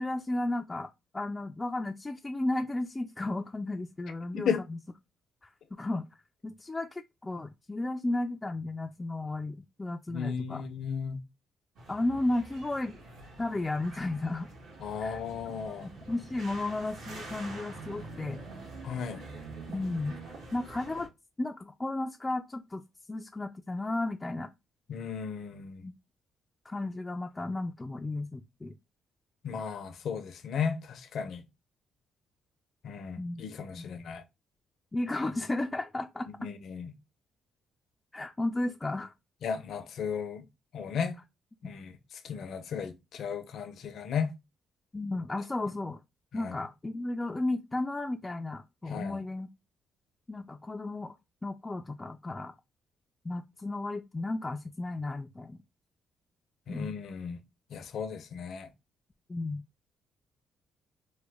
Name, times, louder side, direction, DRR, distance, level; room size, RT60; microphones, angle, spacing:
voice 1, 0.0-4.8 5.4-5.5 5.8-6.0 6.4-10.6 11.9-13.0 13.4-14.5 15.0-15.2 15.8-18.4 19.7-20.2 20.5-21.1 21.4-22.8 23.1-24.5 25.8-25.9 26.7-28.7 33.2-33.4 33.7-33.9 34.9-36.5 38.1-39.1 44.9-46.0 46.3-49.5 50.3-51.1 51.4-52.5 53.2-55.6 56.7-57.0 59.3-59.6, left 2 dB, 20° left, 0.3 m, -34 dB
voice 2, 4.3-4.6 10.1-11.2 14.8-15.9 18.8-19.2 24.9-25.8 29.4-31.5 32.8-34.2 36.4-36.9 39.4-40.4 40.7-41.2 41.6-44.3 46.3-46.5 48.9-49.2 56.7-57.4 57.7-58.7, left 6 dB, 65° left, 0.6 m, -35 dB
sound 1, 11.8-21.1, right 3 dB, 80° right, 1.4 m, -46 dB
3.0 x 2.2 x 3.4 m
cardioid pair, 90°, 0 cm